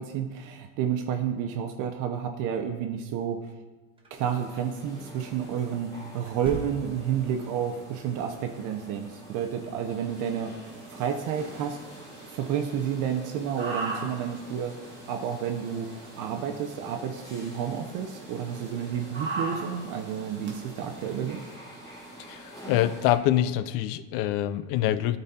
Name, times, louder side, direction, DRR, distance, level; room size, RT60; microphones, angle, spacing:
voice 1, 0.0-3.5 4.1-10.5 10.9-11.8 12.3-14.8 15.1-21.4, right 8 dB, 50° right, 6 dB, 0.7 m, -30 dB
sound 1, 4.0-4.2 6.2-7.2, right 2 dB, 15° right, 1.2 m, -40 dB
sound 2, 4.1-23.2, right 1 dB, 10° left, 2.5 m, -47 dB
sound 3, 10.6-21.5, right 3 dB, 30° right, 1.6 m, -41 dB
voice 2, 22.3-25.2, left 13 dB, 60° left, 14 dB, 0.5 m, -25 dB
12.0 x 4.1 x 4.2 m, 1.3 s
cardioid pair, 150°, 39 cm